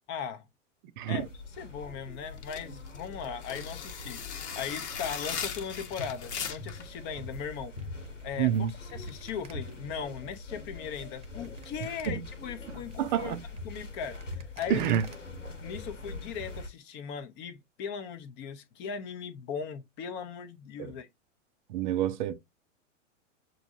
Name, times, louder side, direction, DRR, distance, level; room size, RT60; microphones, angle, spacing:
voice 1, 0.1-0.5 1.1-1.3 1.6-7.7 8.2-13.4 13.6-14.9 15.6-21.1, left 7 dB, 30° left, 0.6 m, -38 dB
sound 1, 1.1-16.7, left 2 dB, 85° left, 1.2 m, -43 dB
sound 2, 2.4-6.9, left 7 dB, 65° left, 0.9 m, -38 dB
sound 3, 7.1-15.1, right 7 dB, 15° right, 0.8 m, -53 dB
voice 2, 8.4-8.7 12.1-12.2 13.0-13.4 14.7-15.1 20.8-20.9 21.7-22.3, right 10 dB, 40° right, 0.5 m, -28 dB
7.6 x 2.6 x 2.6 m
figure-of-eight pair, 100°, 37 cm